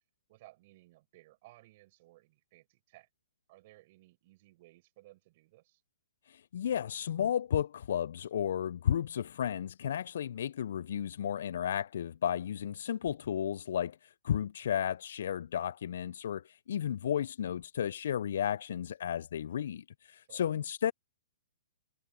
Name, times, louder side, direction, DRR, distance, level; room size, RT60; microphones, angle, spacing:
voice 1, 0.3-3.1 3.5-5.8 20.3-20.4, right 19 dB, 45° right, 5.3 m, -59 dB
voice 2, 6.3-20.9, left 9 dB, 65° left, 0.4 m, -33 dB
hypercardioid pair, 125°, 0 cm